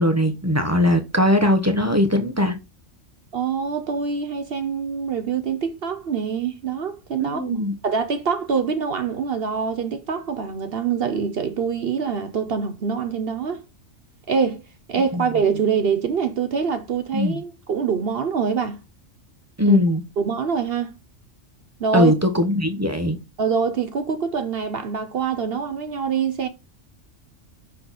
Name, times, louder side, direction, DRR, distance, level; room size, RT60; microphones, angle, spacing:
voice 1, 0.0-2.5 7.2-7.7 15.1-15.2 17.1-17.4 19.6-20.0 21.9-23.2, left 1 dB, 15° right, 0.9 m, -20 dB
voice 2, 3.3-7.4 7.8-13.6 14.3-14.6 14.9-18.8 19.6-19.8 20.2-20.9 21.8-22.1 23.4-26.5, right 6 dB, 55° right, 0.9 m, -24 dB
6.6 x 4.2 x 4.1 m
omnidirectional pair, 1.3 m